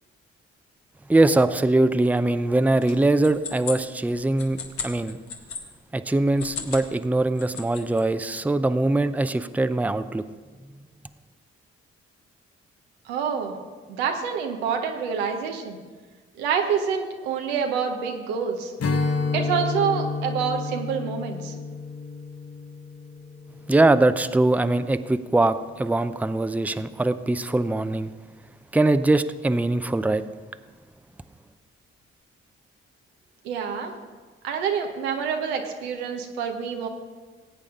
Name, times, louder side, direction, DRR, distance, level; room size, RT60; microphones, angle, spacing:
voice 1, 1.1-5.2 5.9-10.2 23.7-28.1 28.7-30.2, right 2 dB, 5° right, 11 dB, 0.6 m, -22 dB
sound 1, 2.8-5.6 6.3-6.9 7.2-8.0, left 6 dB, 70° left, 1.6 m, -36 dB
voice 2, 13.0-13.5 13.9-15.8 16.4-18.7 19.3-21.5 33.4-33.9 34.4-36.9, right 6 dB, 90° right, 3 dB, 0.9 m, -27 dB
Strum, 18.8-24.2, left 4 dB, 50° left, 1.0 m, -30 dB
16.5 x 8.4 x 3.7 m, 1.4 s
hypercardioid pair, 40°, 31 cm